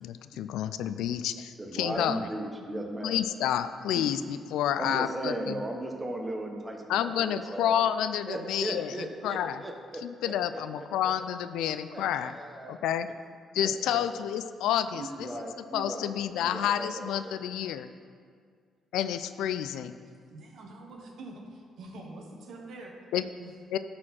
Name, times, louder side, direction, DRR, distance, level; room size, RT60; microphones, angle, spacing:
voice 1, 0.0-2.2 3.0-5.6 6.9-8.9 9.2-9.6 10.0-12.3 12.7-13.1 13.5-15.3 15.7-17.9 18.9-20.0 23.1-23.2 23.7-23.8, left 10 dB, 90° left, 12 dB, 0.3 m, -29 dB
voice 2, 1.6-3.2 4.0-4.1 4.8-7.8 8.3-11.1 11.6-12.8 13.9-14.3 14.9-16.1 16.4-17.3, right 1 dB, 15° right, 2 dB, 1.1 m, -37 dB
voice 3, 20.0-22.9 23.4-23.5, right 2 dB, 70° right, 1 dB, 1.3 m, -45 dB
12.5 x 4.3 x 4.3 m, 2.1 s
cardioid pair, 90°, 0 cm